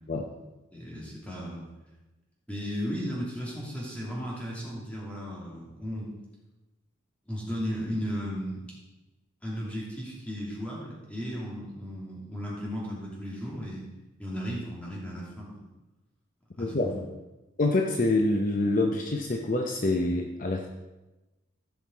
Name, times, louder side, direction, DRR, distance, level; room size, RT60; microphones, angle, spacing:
voice 1, 0.7-1.7 2.5-6.1 7.3-8.6 9.4-13.8 14.2-15.6 16.6-17.0, equal, 5° left, -5 dB, 2.8 m, -35 dB
voice 2, 16.6-16.9 17.6-20.7, left 2 dB, 40° left, 3 dB, 0.7 m, -26 dB
15.0 x 5.8 x 4.6 m, 1.1 s
head